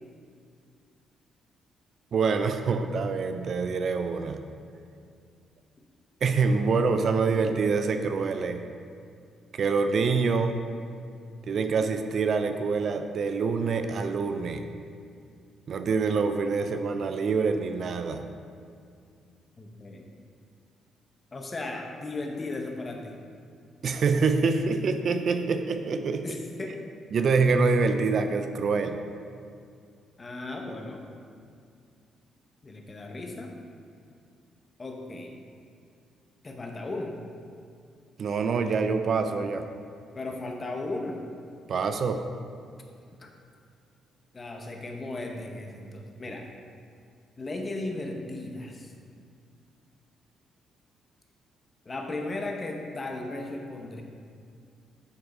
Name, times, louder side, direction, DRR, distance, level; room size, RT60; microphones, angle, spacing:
voice 1, 2.1-4.4 6.2-8.7 9.5-10.6 11.5-14.6 15.7-18.2 23.8-26.4 27.1-29.0 38.2-39.7 41.7-42.2, right 4 dB, 55° right, 8 dB, 0.4 m, -26 dB
voice 2, 19.6-20.0 21.3-23.1 26.2-26.8 30.2-31.0 32.6-33.5 34.8-35.3 36.4-37.1 40.1-41.2 43.2-43.3 44.3-46.5 47.4-48.9 51.8-54.0, left 2 dB, 30° left, 2 dB, 0.8 m, -36 dB
8.2 x 3.5 x 4.2 m, 2.3 s
cardioid pair, 90°, 0 cm